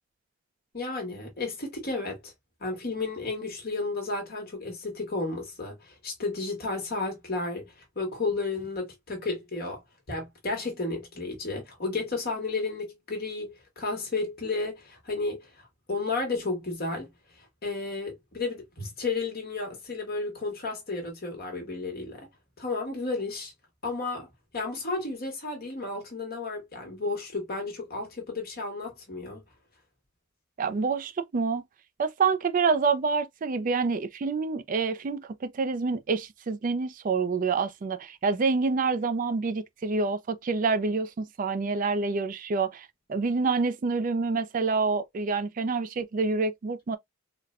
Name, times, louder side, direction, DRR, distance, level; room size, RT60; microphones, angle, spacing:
voice 1, 0.7-2.3 2.6-9.8 10.1-15.5 15.9-17.1 17.4-22.3 22.6-23.5 23.8-24.3 24.5-29.4, left 3 dB, 50° left, 1.2 m, -32 dB
voice 2, 30.6-31.6 32.0-47.0, right 4 dB, 40° right, 0.3 m, -27 dB
4.0 x 2.1 x 2.4 m
head